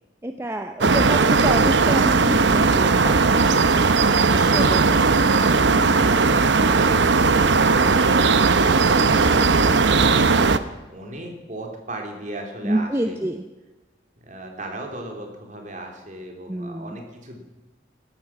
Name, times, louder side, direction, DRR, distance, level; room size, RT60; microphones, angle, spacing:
voice 1, 0.2-3.6 4.3-4.9 12.6-13.4 16.5-17.0, right 1 dB, 15° right, 7 dB, 0.7 m, -27 dB
sound 1, 0.8-10.6, right 4 dB, 70° right, 0.8 m, -17 dB
voice 2, 10.9-13.2 14.2-17.4, right 1 dB, 40° right, 2 dB, 3.2 m, -37 dB
16.5 x 13.0 x 6.0 m, 1.2 s
head